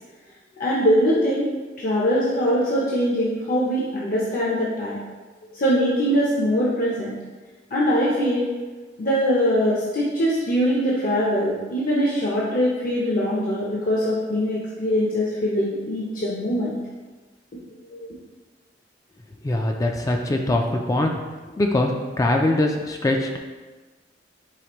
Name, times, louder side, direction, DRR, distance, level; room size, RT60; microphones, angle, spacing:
voice 1, 0.6-1.5 1.8-5.0 5.5-7.1 7.7-8.5 9.0-16.8 18.0-18.1, equal, 50° left, -6 dB, 0.7 m, -22 dB
voice 2, 19.4-21.2 21.6-23.4, left 1 dB, 20° left, 2 dB, 0.3 m, -22 dB
4.9 x 3.3 x 3.0 m, 1.3 s
head